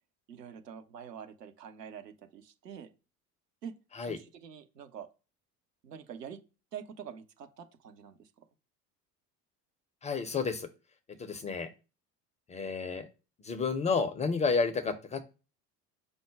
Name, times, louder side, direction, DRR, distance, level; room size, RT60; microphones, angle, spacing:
voice 1, 0.3-2.9 3.6-5.1 5.8-6.4 6.7-8.4, right 8 dB, 75° right, 7 dB, 0.9 m, -46 dB
voice 2, 10.0-10.7 11.2-11.7 12.5-13.0 13.4-15.2, left 4 dB, 15° left, 8 dB, 0.4 m, -31 dB
5.2 x 2.1 x 4.8 m, 0.32 s
figure-of-eight pair, 65°, 48 cm